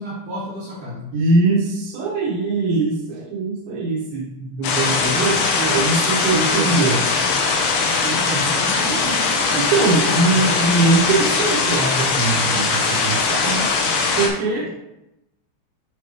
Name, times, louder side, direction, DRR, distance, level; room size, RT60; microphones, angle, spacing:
voice 1, 0.0-1.2 4.7-7.1 8.0-10.9, right 1 dB, 65° right, -6 dB, 2.1 m, -31 dB
voice 2, 1.1-5.4 5.7-7.0 9.6-13.7 14.2-14.8, right 3 dB, 80° right, -3 dB, 3.3 m, -21 dB
sound 1, 4.6-14.3, left 4 dB, 70° left, 2.8 m, -20 dB
11.0 x 4.6 x 3.2 m, 0.89 s
omnidirectional pair, 5.1 m